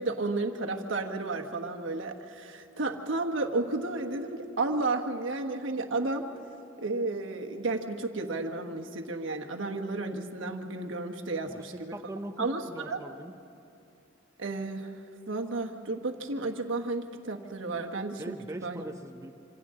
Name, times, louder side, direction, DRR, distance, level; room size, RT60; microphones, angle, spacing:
voice 1, 0.0-6.3 6.8-12.0 12.4-13.0 14.4-14.9 15.3-18.3 18.6-18.8, right 3 dB, 75° right, 3 dB, 1.3 m, -32 dB
voice 2, 11.5-13.3 18.2-19.3, right 1 dB, 15° right, 7 dB, 0.8 m, -41 dB
26.5 x 26.5 x 3.8 m, 2.5 s
head